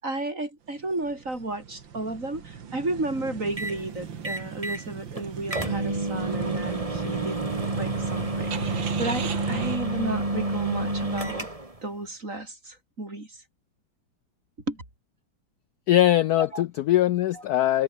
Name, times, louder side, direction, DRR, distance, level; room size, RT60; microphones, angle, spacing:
voice 1, 0.0-7.4 7.7-11.5 11.8-13.4 14.7-14.8 16.4-16.6 17.3-17.4, right 2 dB, 40° right, 6.2 m, -33 dB
sound 1, 0.9-9.8, right 7 dB, 70° right, 2.5 m, -35 dB
sound 2, 3.6-3.8 4.2-4.8 5.2-5.3 5.5-11.8, right 1 dB, 15° right, 3.2 m, -30 dB
voice 2, 15.9-17.8, left 13 dB, 70° left, 0.9 m, -21 dB
omnidirectional pair, 2.2 m